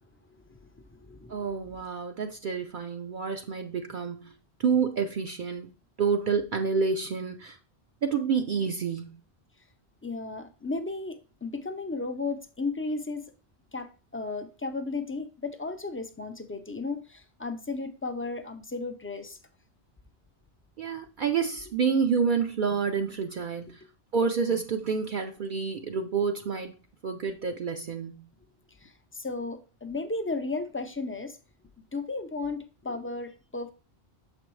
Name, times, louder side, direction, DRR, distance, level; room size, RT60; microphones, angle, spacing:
voice 1, 0.5-1.5 10.0-13.3 13.7-19.4 28.8-31.4 31.9-33.7, left 3 dB, 20° left, 0.3 m, -34 dB
voice 2, 1.3-4.3 4.6-5.7 6.0-7.6 8.0-9.2 20.8-23.8 24.1-26.8 27.0-28.3, right 5 dB, 55° right, 0.7 m, -28 dB
6.8 x 5.0 x 3.1 m
omnidirectional pair, 1.1 m